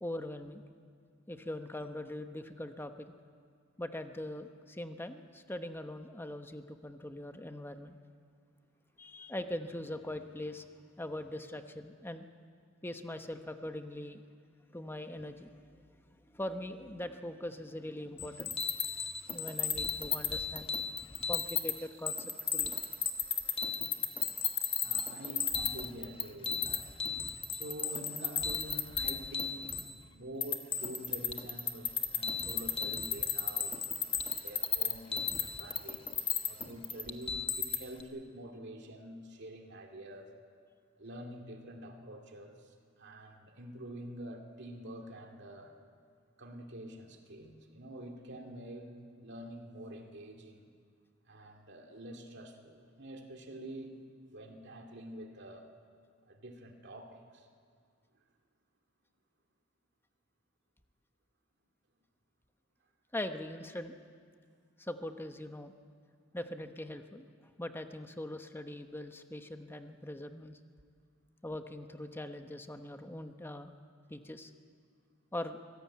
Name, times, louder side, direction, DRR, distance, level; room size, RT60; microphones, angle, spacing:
voice 1, 0.0-0.6 1.3-3.1 3.8-8.0 9.0-10.7 11.0-12.2 12.8-14.2 14.7-15.8 16.0-18.9 19.3-20.7 21.3-22.8 63.1-63.9 64.8-65.7 66.3-70.6 71.4-73.7 74.1-74.5 75.3-75.6, left 1 dB, 10° left, 7 dB, 1.0 m, -42 dB
sound 1, 18.2-21.7 22.1-30.0 30.4-38.0, left 7 dB, 25° left, 1.4 m, -34 dB
voice 2, 24.8-26.9 27.5-29.8 30.1-33.8 34.3-40.3 41.0-45.7 46.4-50.7 51.2-54.0 54.3-55.7 56.3-57.5, right 1 dB, 60° right, 3 dB, 2.4 m, -47 dB
24.5 x 16.5 x 8.5 m, 2.1 s
head